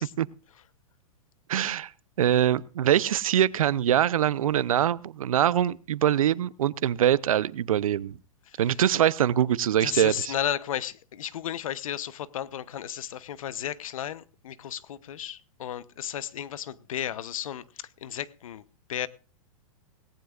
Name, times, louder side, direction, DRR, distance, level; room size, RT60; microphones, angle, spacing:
voice 1, 1.5-1.9 2.2-8.2 8.6-10.3, right 10 dB, 80° right, 0.7 m, -23 dB
voice 2, 9.8-18.6 18.9-19.1, left 10 dB, 75° left, 1.0 m, -34 dB
18.5 x 17.5 x 2.5 m
hypercardioid pair, 130°, 18 cm